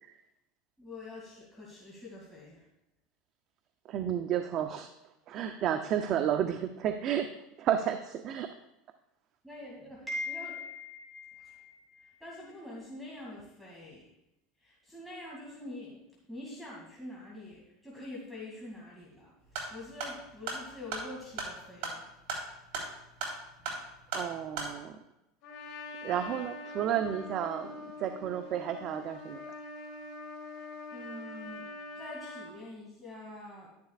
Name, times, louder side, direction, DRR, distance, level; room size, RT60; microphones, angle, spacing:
voice 1, 0.8-2.7 9.4-14.1 14.6-16.0 16.3-19.3 19.7-22.0 30.9-33.7, left 2 dB, ahead, -5 dB, 2.4 m, -44 dB
voice 2, 3.8-4.9 5.3-7.3 7.6-8.5 24.1-25.0 26.0-29.4, right 9 dB, 45° right, 8 dB, 0.6 m, -32 dB
sound 1, 19.4-24.7, right 3 dB, 65° right, 3.6 m, -39 dB
Trumpet, 25.4-32.5, left 3 dB, 55° left, 2.5 m, -44 dB
11.5 x 10.5 x 2.4 m, 0.90 s
supercardioid pair, 120°, 0 cm